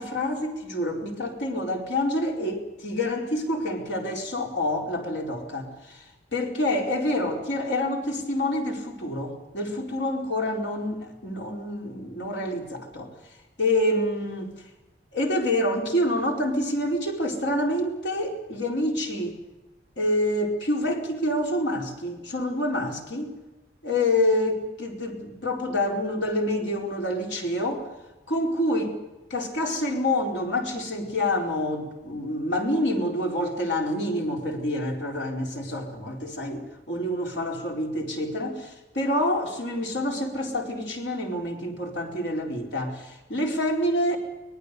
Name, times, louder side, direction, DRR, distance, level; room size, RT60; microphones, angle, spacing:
voice 1, 0.0-13.1 13.6-14.5 15.1-19.4 20.0-23.3 23.8-27.9 28.3-29.0 29.3-44.2, left 1 dB, 90° left, 1 dB, 4.4 m, -27 dB
25.0 x 19.5 x 6.8 m, 1.1 s
head